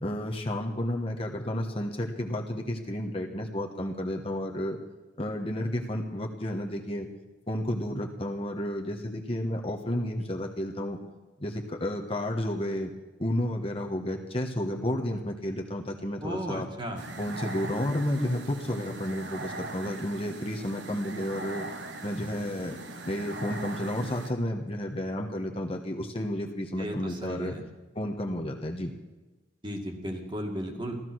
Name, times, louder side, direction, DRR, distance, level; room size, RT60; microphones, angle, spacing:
voice 1, 0.0-4.8 5.2-7.1 7.5-11.0 11.4-12.9 13.2-16.7 17.2-21.7 22.0-22.8 23.1-27.6 27.9-28.9, left 1 dB, 30° left, 1 dB, 1.3 m, -31 dB
voice 2, 16.2-17.1 26.8-27.6 29.6-31.0, equal, 25° right, 2 dB, 2.1 m, -35 dB
sound 1, 17.0-24.3, right 2 dB, 70° right, 1.5 m, -40 dB
15.5 x 13.5 x 6.3 m, 1.2 s
head